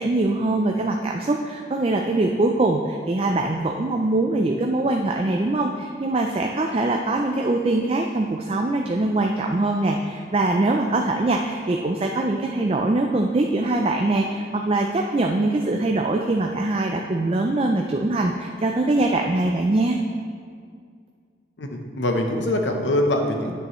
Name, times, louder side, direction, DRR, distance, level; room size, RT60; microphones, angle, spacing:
voice 1, 0.0-20.0, right 2 dB, 30° right, 2 dB, 0.4 m, -23 dB
voice 2, 21.6-23.6, left 1 dB, 85° left, 3 dB, 0.8 m, -23 dB
9.5 x 8.4 x 3.1 m, 2.1 s
head